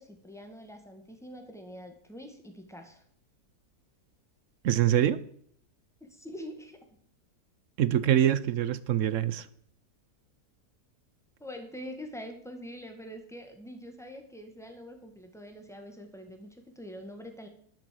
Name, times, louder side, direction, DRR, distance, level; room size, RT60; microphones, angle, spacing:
voice 1, 0.0-3.0 6.0-6.8 11.4-17.5, equal, ahead, 1.8 m, -44 dB
voice 2, 4.6-5.2 7.8-9.5, right 11 dB, 65° right, 0.9 m, -24 dB
12.0 x 6.9 x 7.7 m
omnidirectional pair, 1.7 m